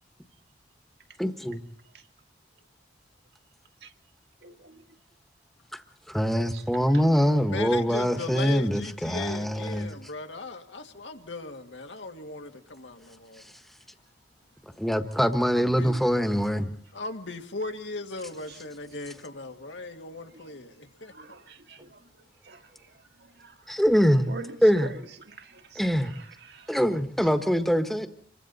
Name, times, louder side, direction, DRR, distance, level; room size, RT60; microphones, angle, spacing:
voice 1, 1.2-1.6 5.7-5.8 6.1-10.0 14.8-16.7 23.7-24.3 24.6-24.9 25.7-26.1 26.7-28.1, equal, ahead, 1.3 m, -24 dB
voice 2, 7.5-13.4 15.6-16.0 16.9-21.1, left 3 dB, 80° left, 2.1 m, -38 dB
voice 3, 21.2-21.9 22.5-22.6 23.4-23.5 24.3-24.5 25.4-25.8 26.5-26.7, right 3 dB, 65° right, 1.9 m, -43 dB
26.5 x 23.5 x 4.2 m
head